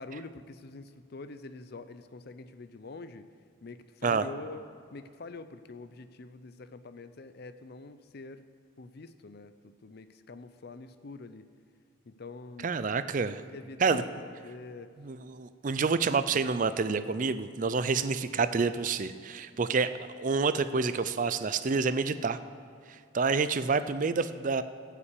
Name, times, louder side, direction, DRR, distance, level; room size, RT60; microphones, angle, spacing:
voice 1, 0.0-3.2 3.6-4.6 4.9-8.4 8.8-11.4 12.1-12.7 13.4-14.9, left 3 dB, 50° left, 12 dB, 0.5 m, -45 dB
voice 2, 12.6-13.4 13.8-14.0 15.0-22.4 22.9-24.6, right 4 dB, 40° right, 12 dB, 0.4 m, -28 dB
14.0 x 5.9 x 8.3 m, 2.3 s
head